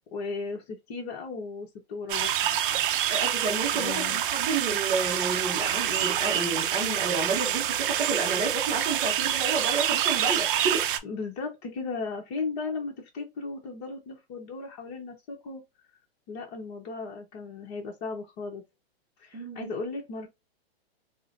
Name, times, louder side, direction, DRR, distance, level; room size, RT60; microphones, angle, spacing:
voice 1, 0.1-2.8 3.7-4.2 11.0-15.6 16.3-18.6 19.2-20.3, left 4 dB, 40° left, 1.1 m, -36 dB
sound 1, 2.1-11.0, right 11 dB, 55° right, 0.6 m, -27 dB
voice 2, 3.1-10.9 19.3-19.7, right 4 dB, 20° right, 0.7 m, -30 dB
4.8 x 2.2 x 2.6 m
hypercardioid pair, 135°, 31 cm